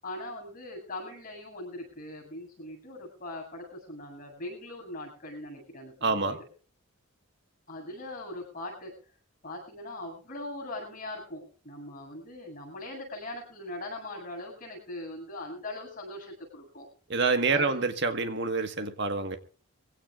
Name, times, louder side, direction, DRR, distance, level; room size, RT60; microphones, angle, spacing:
voice 1, 0.0-6.4 7.7-8.9 9.4-16.9 17.5-17.8, left 1 dB, 40° left, 0 dB, 8.0 m, -41 dB
voice 2, 6.0-6.4 17.1-19.4, right 4 dB, 50° right, 8 dB, 1.7 m, -27 dB
23.5 x 16.5 x 2.5 m, 0.37 s
head